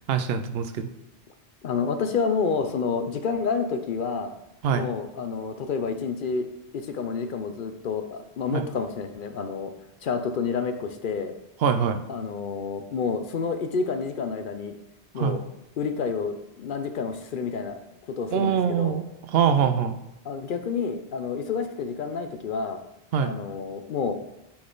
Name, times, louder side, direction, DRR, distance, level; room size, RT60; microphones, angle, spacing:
voice 1, 0.1-0.9 4.6-4.9 8.5-8.7 11.6-12.0 15.2-15.4 18.3-20.0 23.1-23.3, right 7 dB, 70° right, 9 dB, 0.8 m, -24 dB
voice 2, 1.6-4.3 4.7-6.5 6.7-9.7 10.0-11.3 12.1-14.7 15.1-15.4 15.8-17.8 18.2-19.0 20.2-22.8 23.2-24.2, left 5 dB, 60° left, 7 dB, 0.7 m, -29 dB
8.6 x 3.9 x 3.8 m, 0.87 s
omnidirectional pair, 1.1 m